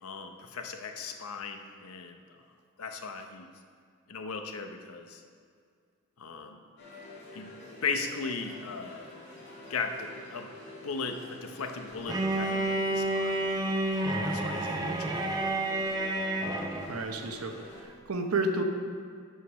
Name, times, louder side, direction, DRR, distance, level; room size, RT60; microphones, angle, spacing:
voice 1, 0.0-2.2 2.8-3.5 4.1-5.2 6.2-6.6 7.3-7.5 7.8-9.1 9.7-10.5 10.8-13.6 14.1-15.2, left 4 dB, 80° left, 6 dB, 0.7 m, -37 dB
sound 1, 6.8-17.8, left 1 dB, 50° left, 2.1 m, -47 dB
Bowed string instrument, 12.1-17.0, right 1 dB, 20° right, 0.5 m, -30 dB
voice 2, 16.8-18.6, right 2 dB, 85° right, 5 dB, 0.8 m, -31 dB
8.2 x 5.0 x 6.2 m, 2.2 s
head